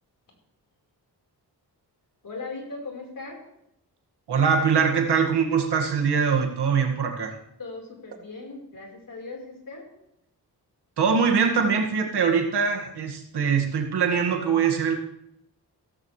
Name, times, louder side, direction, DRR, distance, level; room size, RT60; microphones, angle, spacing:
voice 1, 2.2-3.4 7.6-9.9, left 3 dB, 55° left, 0 dB, 4.7 m, -38 dB
voice 2, 4.3-7.4 11.0-15.0, right 6 dB, 80° right, 2 dB, 2.1 m, -23 dB
16.0 x 14.5 x 3.3 m, 0.79 s
wide cardioid pair, 120°, 40 cm